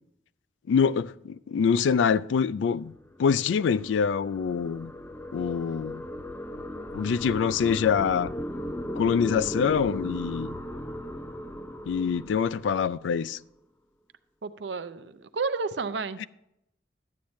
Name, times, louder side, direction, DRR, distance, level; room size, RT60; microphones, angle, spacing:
voice 1, 0.7-2.9 3.2-4.9 5.3-6.0 6.9-8.3 9.0-10.6 11.9-13.4 16.2-16.3, left 6 dB, 85° left, 0.3 m, -25 dB
sound 1, 2.6-13.2, equal, 10° left, 0.4 m, -37 dB
voice 2, 14.4-16.3, right 4 dB, 70° right, 0.6 m, -31 dB
11.5 x 8.7 x 3.1 m
head